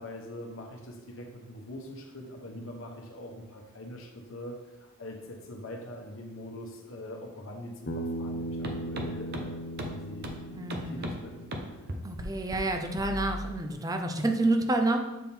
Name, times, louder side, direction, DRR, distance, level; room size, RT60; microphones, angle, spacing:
voice 1, 0.0-10.3 10.8-11.4, left 1 dB, 65° left, 1 dB, 1.0 m, -43 dB
Bass guitar, 7.9-12.2, right 1 dB, 45° left, 0.7 m, -38 dB
sound 1, 8.6-8.7 9.0-9.1 9.3-9.4 9.8-9.9 10.2-10.3 10.7-11.1 11.5-11.6 11.9-12.3 12.5-12.6 13.0-13.5, equal, 50° right, 0.8 m, -35 dB
voice 2, 10.5-11.1 12.0-15.0, right 2 dB, 15° right, 5 dB, 0.5 m, -28 dB
7.3 x 3.6 x 4.4 m, 1.1 s
head